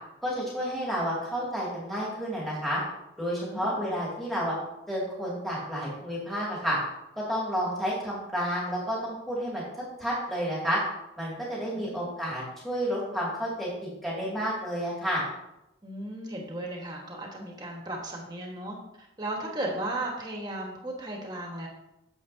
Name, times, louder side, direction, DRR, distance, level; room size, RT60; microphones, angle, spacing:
voice 1, 0.2-2.8 3.2-4.5 4.9-6.8 7.1-9.6 10.0-10.8 11.2-15.2, equal, ahead, -7 dB, 2.3 m, -30 dB
voice 2, 3.4-3.9 11.7-12.1 15.8-21.7, right 1 dB, 20° right, 0 dB, 1.4 m, -36 dB
9.4 x 7.0 x 2.7 m, 0.89 s
head